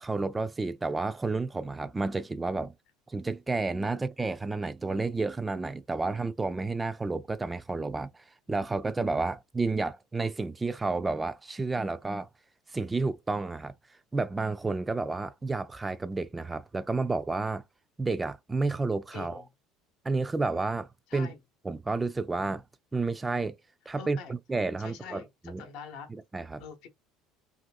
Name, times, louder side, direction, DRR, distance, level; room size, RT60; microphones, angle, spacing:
voice 1, 0.0-2.7 3.1-12.3 12.7-13.7 14.1-17.6 18.0-19.4 20.0-21.3 21.6-22.6 22.9-23.5 23.9-25.6 26.1-26.6, right 3 dB, 15° right, 0.3 m, -31 dB
voice 2, 19.1-19.5 21.1-21.4 24.0-24.3 24.8-26.1 26.6-26.9, left 6 dB, 65° left, 0.8 m, -44 dB
2.7 x 2.5 x 2.3 m
hypercardioid pair, 80°, 0 cm